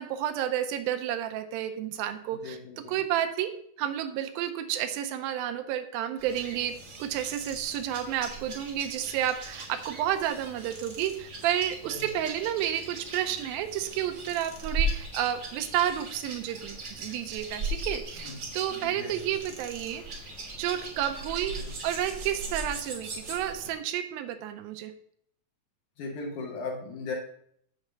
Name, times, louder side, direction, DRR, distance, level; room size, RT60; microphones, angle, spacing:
voice 1, 0.0-3.5 3.8-6.7 7.0-20.0 20.6-21.5 21.8-24.9, right 11 dB, 80° right, 7 dB, 2.4 m, -31 dB
voice 2, 2.4-3.0 11.9-12.1 18.2-19.3 21.6-21.8 26.0-27.1, left 3 dB, 65° left, 1 dB, 2.3 m, -38 dB
sound 1, 6.2-23.7, right 2 dB, 50° right, 1.1 m, -38 dB
7.2 x 4.0 x 6.6 m, 0.67 s
omnidirectional pair, 4.3 m